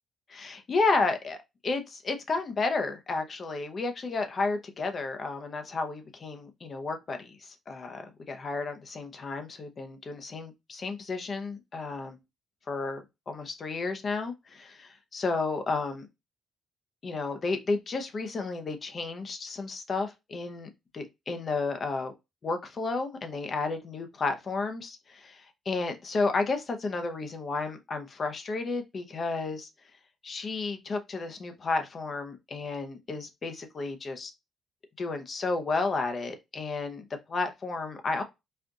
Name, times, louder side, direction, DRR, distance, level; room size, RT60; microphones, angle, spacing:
voice 1, 0.3-1.4 1.6-12.2 12.7-16.1 17.0-22.1 22.4-29.7 30.2-34.3 35.0-38.2, left 3 dB, 35° left, 0.8 m, -32 dB
4.3 x 2.5 x 3.7 m
cardioid pair, 130°, 0 cm